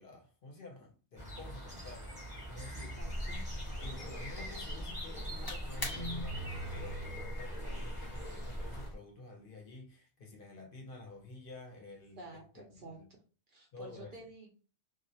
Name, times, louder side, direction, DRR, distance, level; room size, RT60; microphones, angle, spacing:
voice 1, 0.0-3.0 3.8-12.3 12.5-13.1 13.7-14.2, left 2 dB, 60° left, 0.7 m, -50 dB
sound 1, 1.2-8.9, equal, 10° right, 0.7 m, -45 dB
sound 2, 3.0-9.0, equal, 35° left, 0.3 m, -41 dB
voice 2, 3.0-3.5 11.8-13.2 13.5-14.5, right 2 dB, 60° right, 0.6 m, -51 dB
Guitar, 5.9-7.9, right 1 dB, 85° right, 1.1 m, -43 dB
2.3 x 2.0 x 2.6 m
omnidirectional pair, 1.2 m